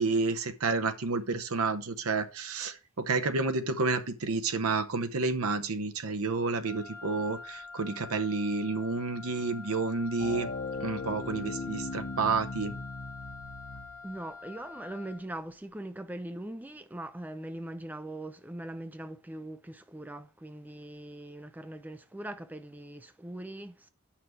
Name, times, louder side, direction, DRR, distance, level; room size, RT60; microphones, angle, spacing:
voice 1, 0.0-10.5 10.8-12.8, right 3 dB, 85° right, 0.8 m, -30 dB
Wind instrument woodwind instrument, 6.6-15.3, left 4 dB, 10° left, 4.0 m, -46 dB
sound 1, 10.2-14.1, left 3 dB, 55° left, 1.2 m, -38 dB
voice 2, 14.0-23.9, right 1 dB, 10° right, 0.4 m, -41 dB
7.9 x 5.9 x 4.5 m
head